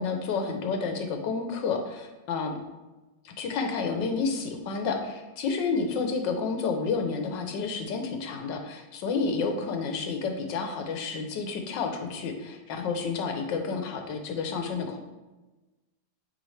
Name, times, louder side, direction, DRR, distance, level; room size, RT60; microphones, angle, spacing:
voice 1, 0.0-2.6 3.2-15.0, left 4 dB, 85° left, 5 dB, 1.4 m, -30 dB
9.0 x 3.4 x 3.2 m, 1.1 s
omnidirectional pair, 1.9 m